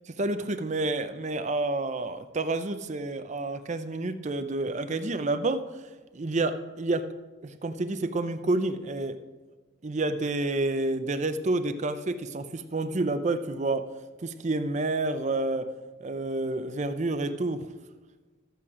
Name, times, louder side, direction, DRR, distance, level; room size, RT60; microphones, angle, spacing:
voice 1, 0.2-5.7 6.1-7.1 7.4-9.2 9.8-13.9 14.2-15.7 16.0-17.7, right 2 dB, 35° right, 9 dB, 0.5 m, -29 dB
13.0 x 8.5 x 4.9 m, 1.3 s
head